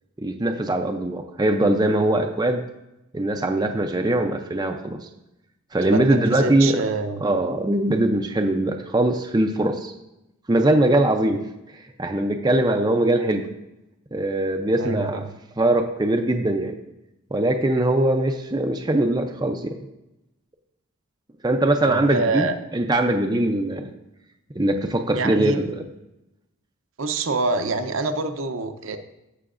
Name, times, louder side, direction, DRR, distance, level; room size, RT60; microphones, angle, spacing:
voice 1, 0.2-2.6 3.1-5.0 5.7-6.9 7.2-9.9 10.5-11.4 11.7-13.4 14.1-16.8 17.3-19.7 21.4-23.9 24.6-25.8, right 1 dB, 20° right, 4 dB, 0.5 m, -21 dB
voice 2, 5.8-7.2 14.8-15.0 21.8-22.5 25.1-25.6 27.0-29.0, right 3 dB, 60° right, 7 dB, 0.7 m, -26 dB
16.5 x 5.8 x 2.5 m, 0.91 s
head